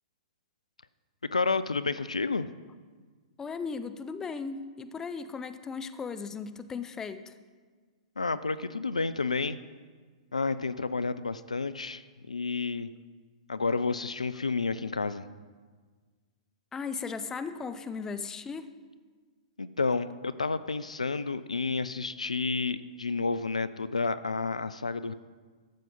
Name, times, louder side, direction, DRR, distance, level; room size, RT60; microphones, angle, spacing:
voice 1, 1.3-2.5 8.2-9.6 10.3-12.9 13.5-15.3 19.6-25.1, left 4 dB, 85° left, 15 dB, 0.4 m, -30 dB
voice 2, 3.4-7.3 16.7-18.7, left 5 dB, 15° left, 10 dB, 0.6 m, -37 dB
13.0 x 7.5 x 5.4 m, 1.5 s
figure-of-eight pair, 110°, 4 cm